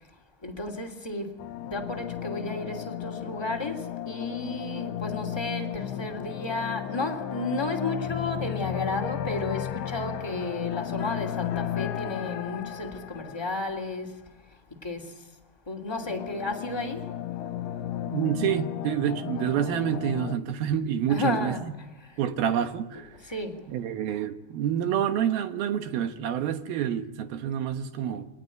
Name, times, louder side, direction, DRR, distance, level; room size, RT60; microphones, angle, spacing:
voice 1, 0.4-14.2 14.7-15.2 15.7-17.1 21.1-21.6 22.0-22.2 23.2-23.6, left 2 dB, 10° left, 2.0 m, -33 dB
Callsign intros, 1.4-13.9 15.9-20.4, left 11 dB, 75° left, 3.0 m, -34 dB
voice 2, 18.1-21.7 22.2-23.1 23.7-28.3, right 9 dB, 70° right, 2.9 m, -28 dB
28.5 x 22.0 x 9.3 m
omnidirectional pair, 4.8 m